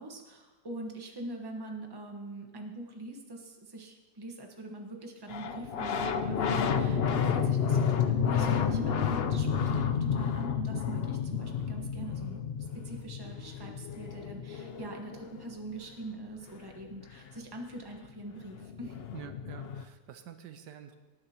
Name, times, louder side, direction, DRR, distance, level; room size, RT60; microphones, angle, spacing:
voice 1, 0.0-7.8 8.0-19.0, right 2 dB, 15° right, 2 dB, 1.1 m, -43 dB
sound 1, 5.3-15.7 17.8-17.9 18.0-19.8, left 7 dB, 85° left, 0.5 m, -30 dB
voice 2, 19.1-20.9, right 9 dB, 85° right, 8 dB, 1.4 m, -47 dB
18.0 x 9.6 x 2.9 m, 1.3 s
omnidirectional pair, 1.8 m